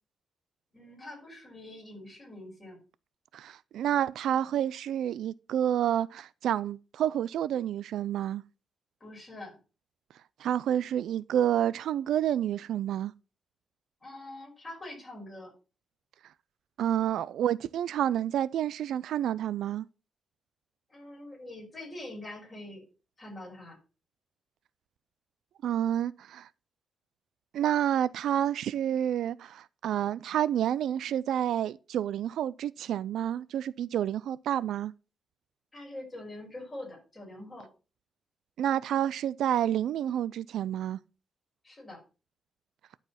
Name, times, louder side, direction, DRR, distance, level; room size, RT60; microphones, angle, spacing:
voice 1, 0.7-2.8 9.0-9.6 14.0-15.5 20.9-22.8 23.2-23.8 35.7-37.7 41.6-42.0, left 1 dB, 20° left, 5.1 m, -44 dB
voice 2, 3.3-8.4 10.4-13.1 16.8-19.9 25.6-26.5 27.5-34.9 38.6-41.0, right 10 dB, 85° right, 0.4 m, -29 dB
11.0 x 4.8 x 5.7 m
wide cardioid pair, 170°, 0 cm